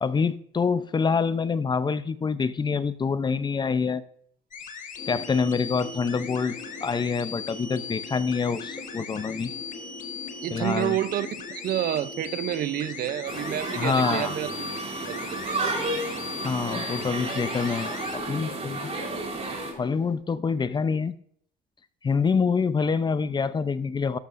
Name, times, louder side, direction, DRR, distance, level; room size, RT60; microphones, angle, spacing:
voice 1, 0.0-4.0 5.1-6.6 6.8-9.5 10.5-11.0 13.7-14.3 16.4-19.0 19.7-21.2 22.0-24.2, left 5 dB, 25° left, 0.6 m, -26 dB
sound 1, 4.5-18.2, left 6 dB, 50° left, 1.6 m, -39 dB
sound 2, 5.0-20.2, left 2 dB, 85° left, 4.4 m, -43 dB
voice 2, 10.4-14.7 15.1-15.7, right 12 dB, 60° right, 0.6 m, -29 dB
sound 3, 13.3-19.7, right 2 dB, 40° right, 4.0 m, -32 dB
13.0 x 12.0 x 2.6 m
cardioid pair, 110°, 17 cm